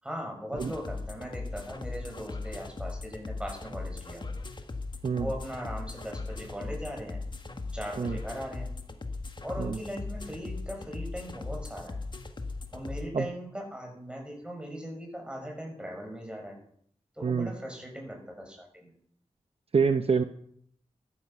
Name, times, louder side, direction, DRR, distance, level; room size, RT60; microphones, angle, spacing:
voice 1, 0.0-4.2 5.1-7.2 7.7-8.7 9.4-12.0 12.7-16.6 17.2-18.9, equal, 10° right, 1 dB, 6.5 m, -39 dB
sound 1, 0.6-13.1, left 3 dB, 40° left, 1.7 m, -38 dB
voice 2, 19.7-20.2, right 5 dB, 55° right, 9 dB, 0.8 m, -26 dB
14.5 x 12.5 x 5.7 m, 0.64 s
wide cardioid pair, 80°, 12 cm